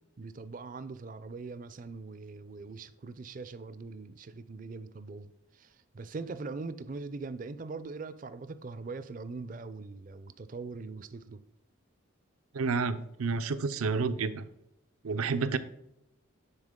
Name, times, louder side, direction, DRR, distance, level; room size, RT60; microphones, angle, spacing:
voice 1, 0.2-11.4, right 3 dB, 40° right, 0.4 m, -42 dB
voice 2, 12.5-14.5 15.0-15.6, right 4 dB, 90° right, 0.6 m, -30 dB
9.7 x 4.3 x 3.7 m
head